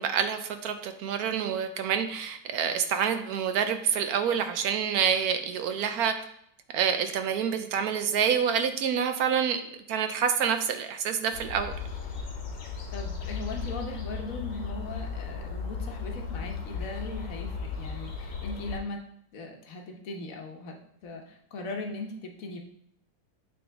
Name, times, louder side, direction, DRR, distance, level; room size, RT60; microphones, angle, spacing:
voice 1, 0.0-6.2 6.7-9.6 9.9-11.7, right 7 dB, 70° right, 8 dB, 0.9 m, -27 dB
sound 1, 11.3-18.8, left 5 dB, 75° left, 1.7 m, -36 dB
voice 2, 12.9-19.0 19.3-22.6, left 2 dB, 55° left, 2 dB, 1.2 m, -39 dB
7.8 x 3.5 x 3.4 m, 0.70 s
omnidirectional pair, 2.0 m